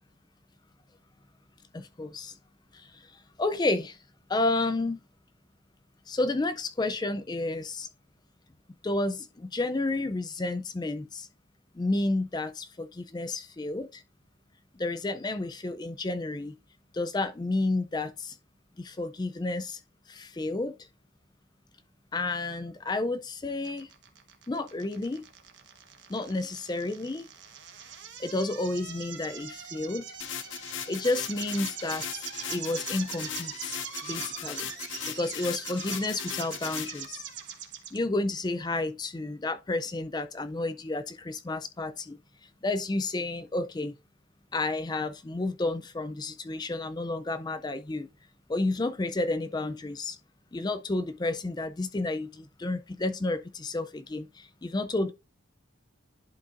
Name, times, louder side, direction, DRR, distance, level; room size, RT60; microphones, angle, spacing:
voice 1, 1.7-2.3 2.7-4.0 4.3-5.0 6.1-7.9 8.8-11.3 11.7-14.0 14.8-16.6 16.9-18.4 18.8-19.8 20.1-20.8 22.1-23.9 24.5-25.2 26.1-27.3 28.2-30.2 30.9-34.7 35.1-37.2 37.9-42.2 42.6-43.9 44.5-48.1 48.5-50.2 50.5-55.1, left 2 dB, 20° left, 0.3 m, -31 dB
sound 1, 23.6-38.0, right 8 dB, 55° right, 1.2 m, -42 dB
sound 2, 30.2-37.1, left 9 dB, 60° left, 0.7 m, -38 dB
11.0 x 4.6 x 2.5 m
head